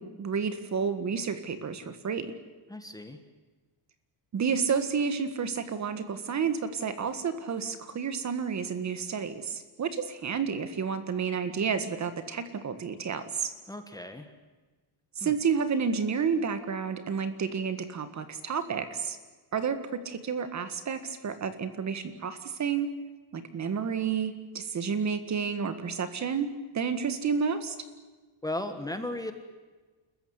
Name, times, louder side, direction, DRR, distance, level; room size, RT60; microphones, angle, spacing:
voice 1, 0.0-2.3 4.3-13.5 15.2-19.2 19.5-22.9 23.3-27.8, right 6 dB, 35° right, 10 dB, 1.7 m, -30 dB
voice 2, 2.7-3.2 13.7-14.3 15.2-15.3 28.4-29.3, left 1 dB, 10° left, 7 dB, 1.4 m, -36 dB
29.0 x 15.0 x 9.7 m, 1.3 s
cardioid pair, 160°, 47 cm